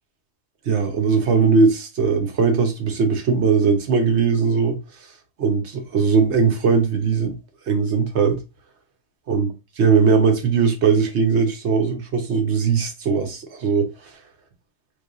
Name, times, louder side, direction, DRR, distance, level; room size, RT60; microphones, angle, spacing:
voice 1, 0.7-4.8 5.4-7.4 7.7-8.4 9.3-13.9, right 5 dB, 80° right, 1.2 m, -19 dB
3.2 x 2.6 x 3.7 m
omnidirectional pair, 1.1 m